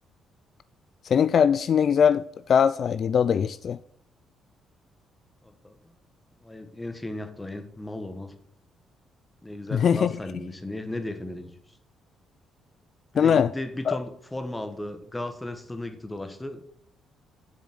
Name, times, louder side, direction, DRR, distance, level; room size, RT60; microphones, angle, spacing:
voice 1, 1.0-3.8 9.7-10.1 13.2-13.5 13.9-14.0, left 7 dB, 55° left, 0.3 m, -21 dB
voice 2, 5.4-5.8 6.4-8.3 9.4-11.5 13.1-16.6, left 1 dB, 10° left, 1.4 m, -35 dB
7.6 x 7.0 x 7.8 m
cardioid pair, 95°, 0 cm